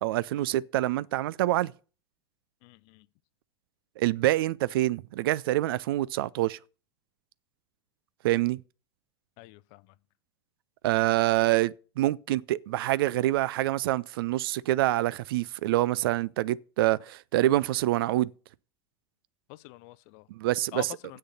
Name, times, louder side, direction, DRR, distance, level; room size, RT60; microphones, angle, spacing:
voice 1, 0.0-1.7 4.0-6.6 8.2-8.6 10.8-18.3 20.3-20.9, right 16 dB, 55° right, 0.4 m, -26 dB
voice 2, 2.6-3.1 9.4-9.8 19.5-20.3 20.7-21.2, left 20 dB, 45° left, 0.5 m, -44 dB
7.9 x 6.4 x 8.0 m
figure-of-eight pair, 85°, 14 cm